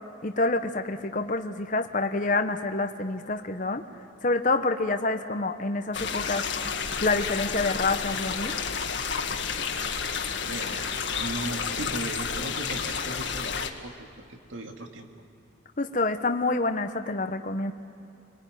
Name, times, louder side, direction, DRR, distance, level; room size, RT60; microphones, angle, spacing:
voice 1, 0.2-3.8 4.2-6.4 7.0-8.5 15.8-17.7, left 3 dB, 40° left, 6 dB, 1.1 m, -27 dB
sound 1, 5.9-13.7, left 6 dB, 70° left, 1.8 m, -31 dB
voice 2, 10.0-15.1, right 2 dB, 90° right, 4 dB, 2.1 m, -38 dB
26.0 x 21.5 x 9.3 m, 2.7 s
head